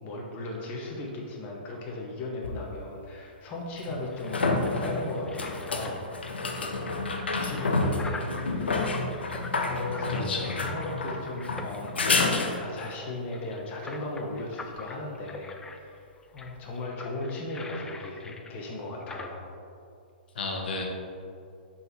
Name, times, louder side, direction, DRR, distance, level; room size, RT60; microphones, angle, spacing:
voice 1, 0.0-6.1 6.4-6.9 7.4-8.8 9.6-19.5, left 2 dB, 30° left, -2 dB, 1.0 m, -37 dB
sound 1, 2.4-2.5 3.8-13.0 16.4-16.5, left 3 dB, 90° left, 0.7 m, -29 dB
sound 2, 3.6-19.3, left 3 dB, 10° left, 0.4 m, -45 dB
voice 2, 10.1-10.6 20.3-20.8, left 3 dB, 70° left, 0 dB, 1.0 m, -32 dB
5.3 x 4.2 x 4.5 m, 2.4 s
hypercardioid pair, 125°, 6 cm